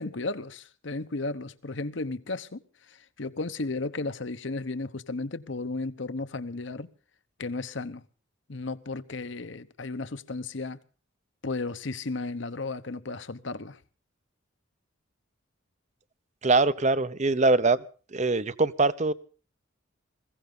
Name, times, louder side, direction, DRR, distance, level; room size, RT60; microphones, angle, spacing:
voice 1, 0.0-6.9 7.4-8.0 8.5-10.8 11.4-13.8, left 3 dB, 60° left, 0.9 m, -34 dB
voice 2, 16.4-17.8 18.1-19.1, right 3 dB, 35° right, 0.8 m, -23 dB
21.0 x 16.0 x 3.9 m
head